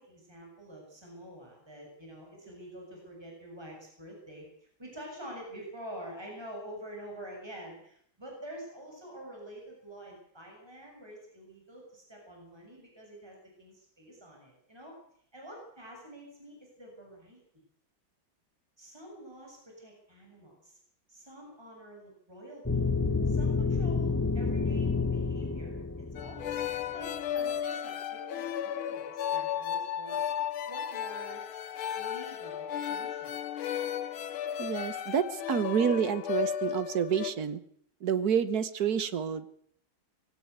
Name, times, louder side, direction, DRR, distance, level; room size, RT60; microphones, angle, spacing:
voice 1, 0.0-4.5 4.8-15.0 15.3-17.4 18.8-20.8 21.1-22.8 23.3-30.2 30.7-31.4 32.0-33.3, equal, 10° right, -1 dB, 7.0 m, -47 dB
sound 1, 22.7-26.8, left 4 dB, 15° left, 0.6 m, -29 dB
sound 2, 26.2-37.3, left 9 dB, 85° left, 1.9 m, -34 dB
voice 2, 34.6-37.6 38.0-39.4, right 7 dB, 50° right, 13 dB, 1.6 m, -29 dB
21.0 x 17.0 x 8.2 m, 0.65 s
omnidirectional pair, 2.2 m